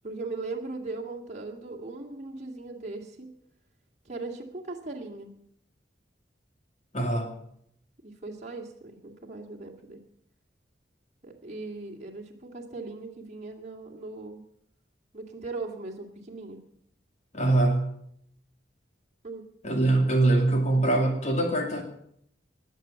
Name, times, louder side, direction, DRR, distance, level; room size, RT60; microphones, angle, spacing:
voice 1, 0.0-3.3 4.0-5.3 8.0-10.0 11.2-14.4 15.1-16.6 19.2-19.5, right 3 dB, 40° right, 0 dB, 2.4 m, -39 dB
voice 2, 6.9-7.3 17.3-17.9 19.6-21.8, right 2 dB, 40° left, 3 dB, 2.3 m, -23 dB
20.5 x 8.0 x 7.1 m, 0.70 s
head